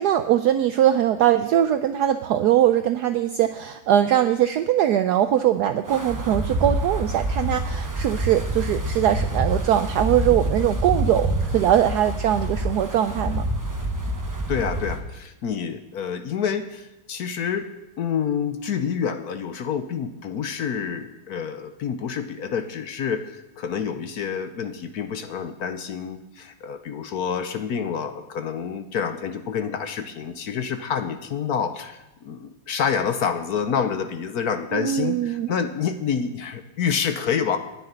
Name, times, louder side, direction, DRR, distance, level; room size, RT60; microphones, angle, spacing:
voice 1, 0.0-13.5 34.7-35.5, right 11 dB, 80° right, 9 dB, 0.9 m, -21 dB
Wind, 5.9-15.0, right 1 dB, 25° right, 0.4 m, -27 dB
voice 2, 14.5-17.7 18.0-37.6, left 7 dB, 60° left, 9 dB, 1.0 m, -28 dB
9.9 x 7.8 x 9.5 m, 0.94 s
omnidirectional pair, 2.3 m